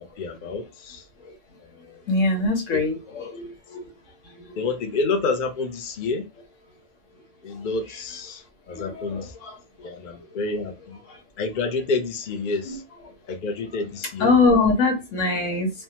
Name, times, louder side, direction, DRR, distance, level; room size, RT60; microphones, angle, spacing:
voice 1, 0.2-1.0 2.7-2.8 4.6-6.3 7.4-8.4 8.7-9.3 9.8-11.0 11.4-12.8 13.3-14.3, left 3 dB, 50° left, 0.7 m, -28 dB
voice 2, 2.1-3.9 4.3-4.5 7.9-8.0 8.7-9.6 9.8-9.9 11.1-11.2 12.6-12.8 14.2-15.7, left 3 dB, 90° left, 1.4 m, -23 dB
3.3 x 2.0 x 2.8 m
omnidirectional pair, 1.3 m